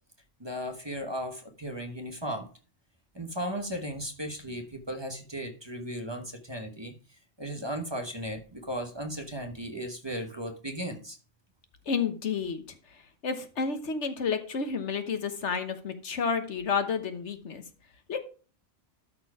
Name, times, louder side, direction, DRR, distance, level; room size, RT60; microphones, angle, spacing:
voice 1, 0.4-2.5 3.1-6.9 7.4-11.2, equal, 25° right, 4 dB, 1.1 m, -36 dB
voice 2, 11.9-12.8 13.2-17.6 18.1-18.2, left 5 dB, 75° left, 8 dB, 1.4 m, -30 dB
12.5 x 4.5 x 4.7 m, 0.38 s
omnidirectional pair, 1.2 m